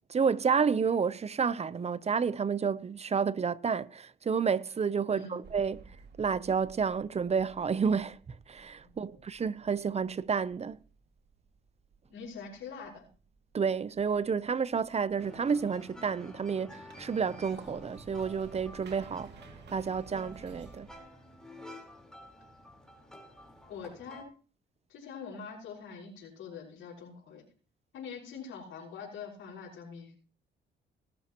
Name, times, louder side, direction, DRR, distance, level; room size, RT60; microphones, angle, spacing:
voice 1, 0.1-5.8 6.2-10.8 13.5-19.4 19.7-20.9, right 6 dB, 35° right, 0.7 m, -30 dB
sound 1, 5.4-21.0, right 5 dB, 60° right, 2.3 m, -55 dB
voice 2, 8.8-9.2 12.1-13.1 23.7-24.3 24.9-27.4 27.9-30.1, left 5 dB, 85° left, 5.7 m, -44 dB
sound 2, 15.2-24.2, left 1 dB, 5° left, 4.3 m, -50 dB
19.5 x 12.5 x 3.0 m
cardioid pair, 90°, 20 cm